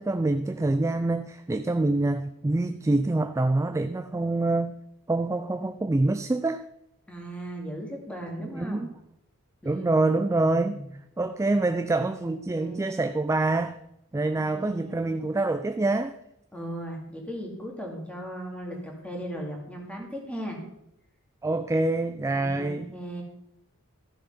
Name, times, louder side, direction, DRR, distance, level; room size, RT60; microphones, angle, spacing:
voice 1, 0.0-4.8 5.1-6.7 8.5-8.9 9.7-10.8 11.2-13.8 14.1-16.2 21.4-22.9, right 2 dB, 15° right, 0.3 m, -26 dB
voice 2, 7.1-8.9 9.6-10.9 12.2-12.9 14.5-15.1 16.5-20.6 22.3-23.2, equal, 5° left, 2.5 m, -37 dB
14.0 x 6.8 x 5.5 m
head